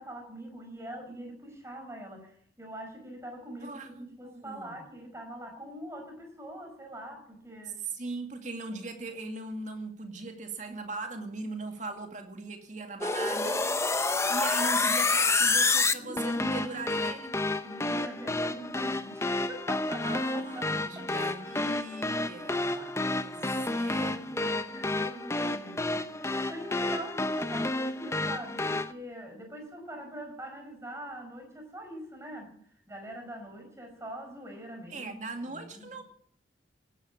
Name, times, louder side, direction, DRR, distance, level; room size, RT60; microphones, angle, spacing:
voice 1, 0.0-7.8 17.6-21.1 22.5-22.9 23.9-32.6 32.9-35.1 35.4-35.9, right 1 dB, 15° right, 5.0 m, -43 dB
voice 2, 3.6-4.8 7.9-13.7 14.3-17.4 20.0-24.4 34.9-36.0, right 3 dB, 40° right, 2.3 m, -39 dB
sound 1, 13.0-28.9, left 3 dB, 15° left, 0.7 m, -29 dB
17.5 x 10.5 x 7.3 m
head